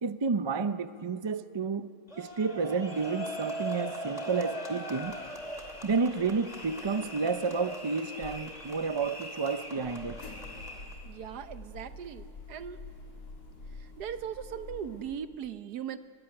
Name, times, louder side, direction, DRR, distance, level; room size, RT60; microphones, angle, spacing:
voice 1, 0.0-1.9 2.2-5.1 5.8-10.2, right 4 dB, 40° right, 0.4 m, -30 dB
sound 1, 2.1-11.0, right 1 dB, 25° left, 2.9 m, -40 dB
sound 2, 5.0-7.8 8.1-15.1, left 2 dB, 80° left, 4.2 m, -48 dB
voice 2, 11.0-12.8 14.0-16.0, right 8 dB, 90° right, 1.5 m, -39 dB
24.0 x 23.5 x 9.9 m
omnidirectional pair, 1.7 m